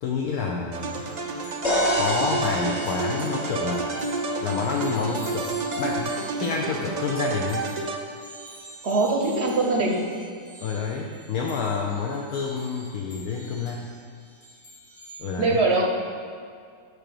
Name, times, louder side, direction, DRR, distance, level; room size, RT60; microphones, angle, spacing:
voice 1, 0.0-1.0 2.0-3.9 4.4-7.7 10.6-13.9 15.2-15.6, left 5 dB, 70° left, 0 dB, 1.1 m, -28 dB
sound 1, 0.7-8.4, right 3 dB, 75° right, 0.3 m, -30 dB
sound 2, 0.8-15.2, right 1 dB, 45° left, 1.8 m, -46 dB
sound 3, 1.6-5.5, left 1 dB, 30° left, 1.0 m, -29 dB
voice 2, 8.8-10.0 15.4-15.9, right 3 dB, 55° right, 1 dB, 0.8 m, -22 dB
6.8 x 4.9 x 6.9 m, 2.2 s
omnidirectional pair, 1.7 m